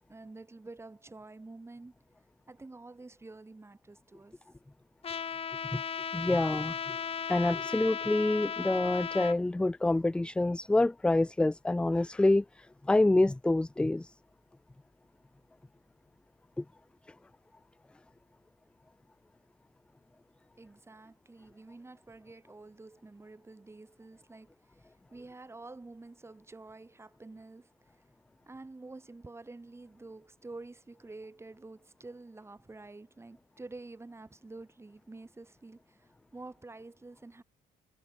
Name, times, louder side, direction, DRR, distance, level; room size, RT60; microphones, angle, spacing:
voice 1, 0.1-1.9 2.5-4.4 20.6-28.0 28.5-37.4, right 3 dB, 15° right, 4.1 m, -49 dB
Trumpet, 5.0-9.4, left 7 dB, 35° left, 1.0 m, -36 dB
voice 2, 6.1-6.7 7.3-14.1 16.6-16.7, left 2 dB, 5° left, 0.4 m, -27 dB
cardioid pair, 110°, 17 cm